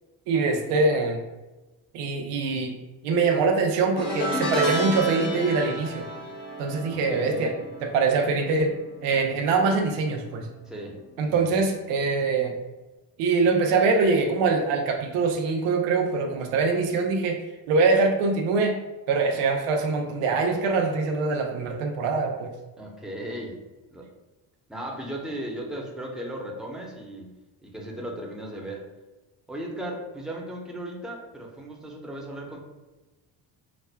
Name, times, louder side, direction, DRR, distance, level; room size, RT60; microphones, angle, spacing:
voice 1, 0.3-1.2 1.9-2.8 3.0-6.0 6.6-7.5 7.8-8.7 9.0-10.5 11.2-12.5 13.2-17.4 17.7-18.8 19.1-22.5, right 4 dB, 85° right, 3 dB, 0.7 m, -23 dB
sound 1, 4.0-9.4 9.6-10.0 11.2-11.3, right 1 dB, 60° left, 1.1 m, -31 dB
voice 2, 6.9-7.5 10.7-11.0 11.3-11.6 22.8-23.6 23.9-24.1 24.7-27.3 27.6-28.9 29.5-32.6, right 1 dB, ahead, -2 dB, 0.9 m, -36 dB
5.9 x 2.1 x 2.2 m, 1.1 s
supercardioid pair, 65°, 50 cm